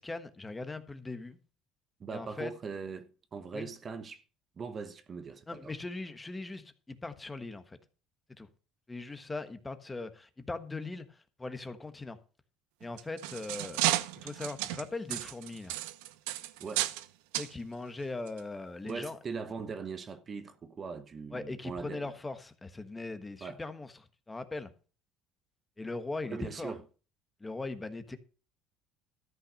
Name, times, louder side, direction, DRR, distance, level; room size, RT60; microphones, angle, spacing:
voice 1, 0.0-1.4 2.1-2.5 3.5-3.7 5.5-7.8 8.4-8.5 8.9-12.2 12.8-13.8 14.2-15.7 17.4-19.2 21.3-23.9 24.3-24.7 25.8-26.7 27.4-28.2, left 3 dB, 15° left, 1.3 m, -40 dB
voice 2, 2.0-4.2 4.6-5.7 16.6-16.9 18.8-22.1 23.4-23.6 26.3-26.8, right 5 dB, 35° right, 1.2 m, -40 dB
sound 1, 12.8-17.1 17.3-17.5 18.3-18.4 18.9-19.0, right 15 dB, 90° right, 0.7 m, -33 dB
13.5 x 5.8 x 6.5 m
supercardioid pair, 95°, 0 cm